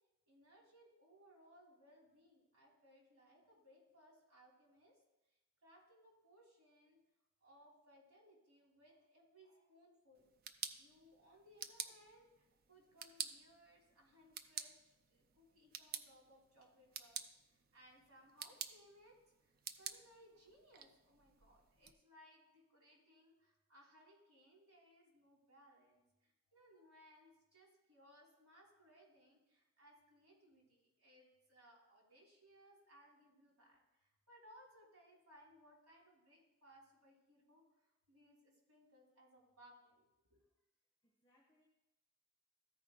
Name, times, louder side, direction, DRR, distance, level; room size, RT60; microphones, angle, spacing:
voice 1, 0.3-5.0 5.3-7.0 7.4-10.3 10.8-17.2 17.4-40.4, equal, 85° right, -3 dB, 3.2 m, -66 dB
sound 1, 10.2-21.9, right 8 dB, 45° right, 0.4 m, -51 dB
voice 2, 40.3-41.7, left 1 dB, 20° left, -3 dB, 1.5 m, -78 dB
13.5 x 4.8 x 3.7 m, 0.93 s
head